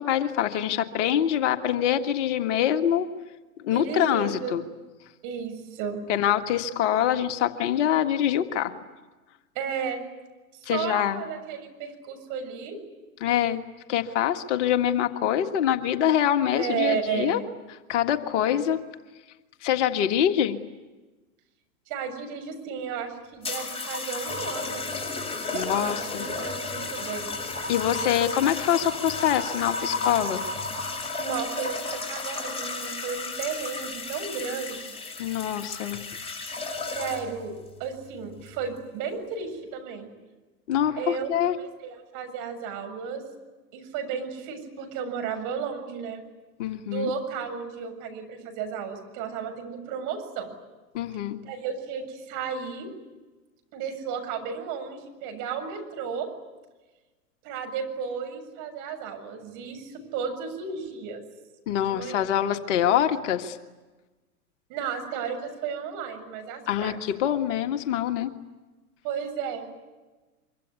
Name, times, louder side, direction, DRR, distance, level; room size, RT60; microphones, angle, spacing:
voice 1, 0.0-3.1 3.6-4.6 6.1-8.7 10.6-11.2 13.2-13.6 13.9-17.4 17.9-18.8 19.6-20.6 25.5-26.3 27.7-30.4 35.2-36.0 40.7-41.6 46.6-47.1 50.9-51.4 61.7-63.6 66.7-68.3, left 10 dB, 50° left, 8 dB, 1.8 m, -25 dB
voice 2, 3.7-4.6 5.2-6.1 9.6-10.0 10.6-12.8 16.6-17.5 21.9-24.9 25.5-27.3 31.2-35.0 36.9-37.5 37.8-40.1 41.0-41.3 41.6-43.2 43.7-46.2 46.9-50.5 51.4-52.9 53.7-56.3 57.4-61.2 61.9-62.3 64.7-67.0 69.0-69.7, right 6 dB, 45° right, 6 dB, 7.3 m, -33 dB
sound 1, 23.4-37.4 38.3-38.7, left 3 dB, 15° left, 6.6 m, -33 dB
24.5 x 24.5 x 9.6 m, 1.2 s
hypercardioid pair, 105°, 45 cm